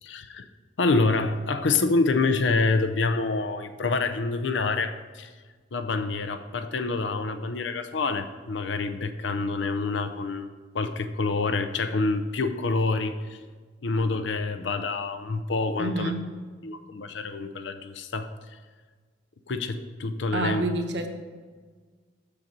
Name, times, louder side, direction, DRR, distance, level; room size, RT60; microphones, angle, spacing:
voice 1, 0.0-0.4 0.8-5.3 5.7-13.4 13.8-16.1 16.6-18.3 19.5-20.6, left 3 dB, 85° left, 9 dB, 0.6 m, -27 dB
voice 2, 15.8-16.2 20.3-21.1, right 2 dB, 70° right, 5 dB, 1.0 m, -28 dB
7.5 x 6.9 x 5.2 m, 1.5 s
head